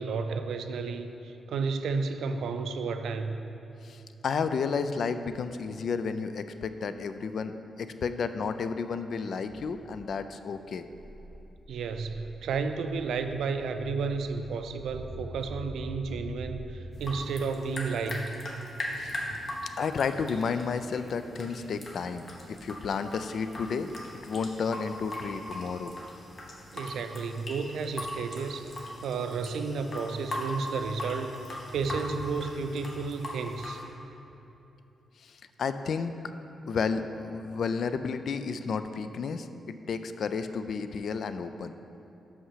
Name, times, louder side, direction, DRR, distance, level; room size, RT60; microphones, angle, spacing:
voice 1, 0.0-3.4 11.7-18.3 26.7-31.4 31.7-33.8, right 4 dB, 85° right, 8 dB, 0.4 m, -32 dB
voice 2, 3.8-10.9 18.9-19.2 19.8-23.9 24.2-25.9 35.2-36.1 36.7-41.7, left 5 dB, 65° left, 10 dB, 0.3 m, -32 dB
sound 1, 9.5-17.3, right 1 dB, 15° right, 0.5 m, -45 dB
sound 2, 16.9-33.8, left 1 dB, 50° left, 1.1 m, -40 dB
5.6 x 5.6 x 5.6 m, 2.9 s
cardioid pair, 90°, 0 cm